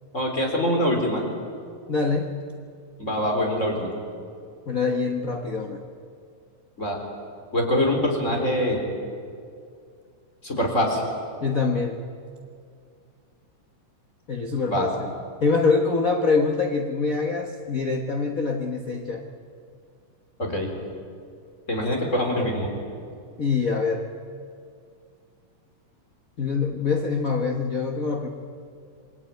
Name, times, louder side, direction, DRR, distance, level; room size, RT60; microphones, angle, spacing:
voice 1, 0.1-1.2 3.0-3.9 6.8-7.0 7.5-8.9 10.4-11.0 14.7-14.9 20.4-20.7 21.7-22.7, left 1 dB, 20° left, 2 dB, 4.2 m, -24 dB
voice 2, 1.9-2.4 4.7-5.8 11.4-12.0 14.3-15.1 15.4-19.2 22.4-22.5 23.4-24.0 26.4-28.3, left 4 dB, 60° left, 3 dB, 0.8 m, -24 dB
27.5 x 22.0 x 9.2 m, 2.3 s
omnidirectional pair, 3.8 m